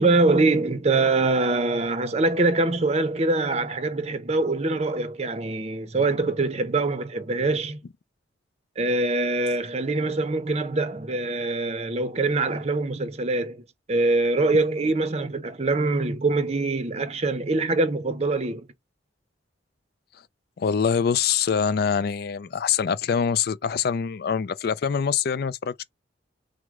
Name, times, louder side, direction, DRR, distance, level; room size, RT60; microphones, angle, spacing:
voice 1, 0.0-7.8 8.8-18.7, right 2 dB, 35° right, 0.7 m, -24 dB
voice 2, 20.6-25.8, left 7 dB, 55° left, 0.4 m, -24 dB
6.1 x 2.1 x 3.6 m
head